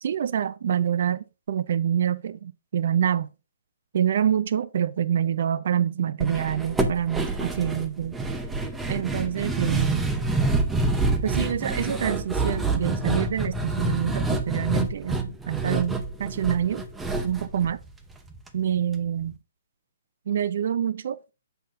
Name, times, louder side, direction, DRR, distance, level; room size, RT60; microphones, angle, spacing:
voice 1, 0.0-3.3 3.9-8.2 8.9-10.1 11.2-16.8 17.2-17.8 18.5-19.4 20.3-21.2, right 9 dB, 60° right, 0.5 m, -26 dB
sound 1, 6.2-18.5 18.8-18.9 19.2-19.3, right 3 dB, 10° right, 0.6 m, -27 dB
7.3 x 5.7 x 2.5 m
hypercardioid pair, 145°, 0 cm